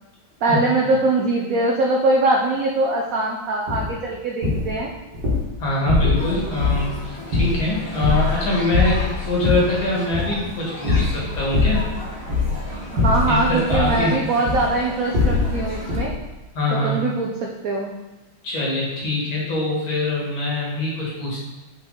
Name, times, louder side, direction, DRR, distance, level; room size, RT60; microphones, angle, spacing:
voice 1, 0.4-4.9 12.7-16.1 16.7-18.0, right 2 dB, 85° right, 0 dB, 0.7 m, -22 dB
sound 1, 3.7-3.9 4.4-4.7 5.1-5.4 5.9-6.3 6.6-6.9 7.3-8.4 8.7-9.7 10.1-10.4 10.9-11.9 12.2-12.7 13.0-14.0 14.5-14.8 15.1-15.6 15.9-16.2, left 3 dB, 55° right, 2.1 m, -21 dB
voice 2, 5.6-11.8 13.3-14.2 16.5-17.0 18.4-21.4, left 2 dB, 75° left, -4 dB, 2.5 m, -24 dB
sound 2, 6.2-16.0, left 1 dB, 50° left, 2.0 m, -36 dB
5.9 x 4.3 x 3.8 m, 1.1 s
omnidirectional pair, 2.2 m